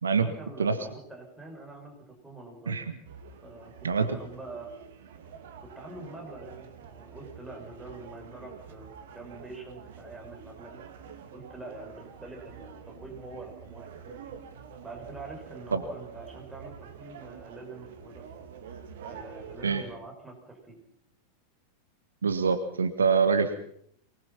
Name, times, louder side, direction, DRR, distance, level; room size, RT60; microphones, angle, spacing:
voice 1, 0.1-2.8 3.4-4.7 5.7-10.8 11.3-14.2 14.8-18.2 19.0-20.8, right 2 dB, 5° right, 0 dB, 6.7 m, -45 dB
voice 2, 2.7-3.0 3.8-4.2 15.7-15.8 19.6-19.8 22.2-23.6, right 5 dB, 70° right, 10 dB, 1.5 m, -25 dB
sound 1, 3.0-19.9, right 7 dB, 55° right, 2.2 m, -47 dB
24.0 x 20.0 x 5.8 m, 0.68 s
figure-of-eight pair, 90°, 0 cm